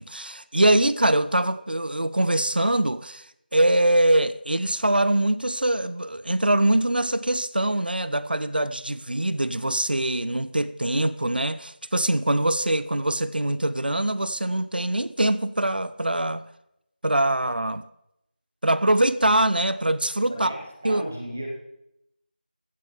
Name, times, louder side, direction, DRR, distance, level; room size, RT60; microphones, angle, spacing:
voice 1, 0.0-3.2 3.5-16.4 17.0-17.8 18.6-20.5 20.8-21.0, right 1 dB, 70° right, 0.6 m, -23 dB
voice 2, 20.3-21.5, right 1 dB, 10° right, 0.7 m, -35 dB
15.5 x 9.0 x 3.6 m
figure-of-eight pair, 175°, 5 cm